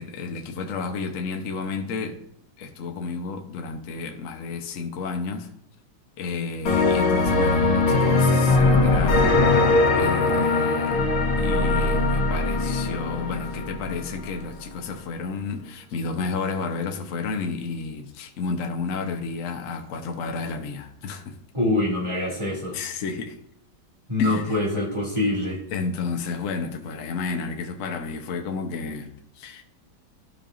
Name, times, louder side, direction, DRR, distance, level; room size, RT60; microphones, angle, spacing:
voice 1, 0.0-2.2 2.6-5.5 6.2-11.0 11.4-21.4 22.7-23.4 24.2-24.6 25.7-29.6, left 4 dB, 55° left, 1.0 m, -31 dB
sound 1, 6.7-14.3, left 3 dB, 85° left, 2.0 m, -21 dB
voice 2, 21.5-22.8 24.1-25.6, left 2 dB, 15° right, 2.6 m, -24 dB
13.0 x 5.3 x 2.5 m
omnidirectional pair, 2.2 m